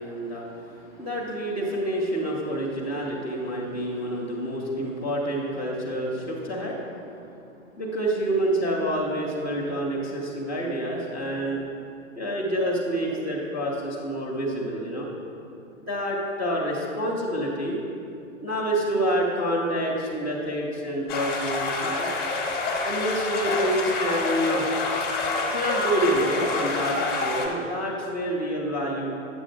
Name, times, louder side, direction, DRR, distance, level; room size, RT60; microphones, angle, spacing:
voice 1, 0.0-7.2 7.8-11.6 12.2-15.1 15.9-17.8 18.4-22.1 22.8-24.6 25.5-29.1, right 1 dB, 5° left, -12 dB, 0.3 m, -28 dB
sound 1, 21.1-27.5, left 3 dB, 25° left, 0.8 m, -27 dB
8.5 x 7.5 x 2.5 m, 2.6 s
figure-of-eight pair, 115°, 40 cm